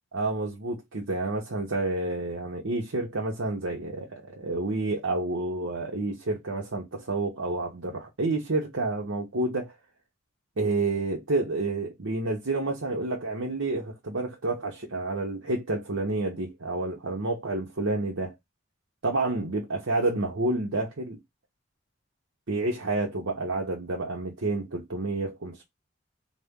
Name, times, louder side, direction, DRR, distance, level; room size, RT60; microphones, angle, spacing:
voice 1, 0.1-9.7 10.6-18.3 19.0-21.2 22.5-25.6, right 2 dB, 80° right, 0.9 m, -29 dB
4.1 x 2.2 x 3.6 m
head